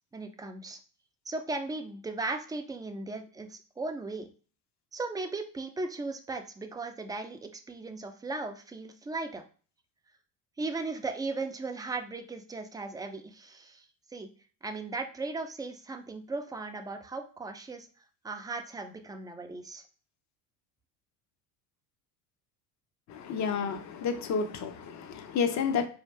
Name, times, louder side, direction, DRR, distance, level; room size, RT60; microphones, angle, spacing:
voice 1, 0.1-0.8 1.3-4.3 4.9-9.4 10.6-13.8 14.1-14.3 14.6-17.9 18.2-19.8, right 3 dB, 10° right, 5 dB, 0.5 m, -37 dB
voice 2, 23.1-25.9, left 6 dB, 35° left, 6 dB, 0.7 m, -30 dB
4.3 x 2.8 x 3.2 m, 0.38 s
supercardioid pair, 95°, 46 cm